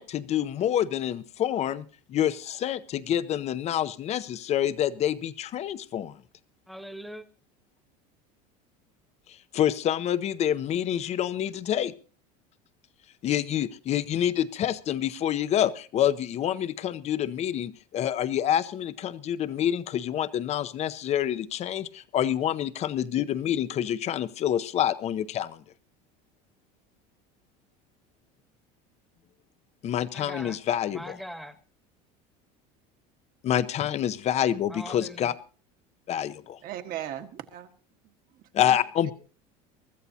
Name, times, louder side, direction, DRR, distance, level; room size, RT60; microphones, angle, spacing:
voice 1, 0.0-6.2 9.5-11.9 13.2-25.6 29.8-31.1 33.4-35.3 36.1-36.6 38.5-39.1, left 10 dB, 35° left, 0.7 m, -27 dB
voice 2, 6.7-7.2 30.1-30.6 30.9-31.6 34.7-35.3, equal, ahead, 1.3 m, -41 dB
voice 3, 36.6-37.7 38.0-38.1 38.6-38.8 39.0-39.1, right 11 dB, 50° right, 1.5 m, -37 dB
23.5 x 13.5 x 2.8 m
supercardioid pair, 130°, 19 cm